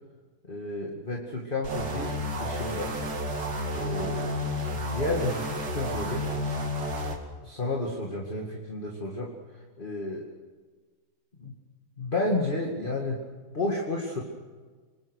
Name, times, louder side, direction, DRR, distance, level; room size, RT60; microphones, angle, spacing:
voice 1, 0.5-3.0 3.7-4.3 4.7-6.3 7.4-10.2 11.4-11.5 12.0-13.2 13.5-14.2, left 2 dB, 25° left, -1 dB, 2.4 m, -31 dB
sound 1, 1.6-7.2, left 1 dB, 55° right, 2.9 m, -31 dB
27.0 x 21.0 x 6.5 m, 1.4 s
omnidirectional pair, 2.2 m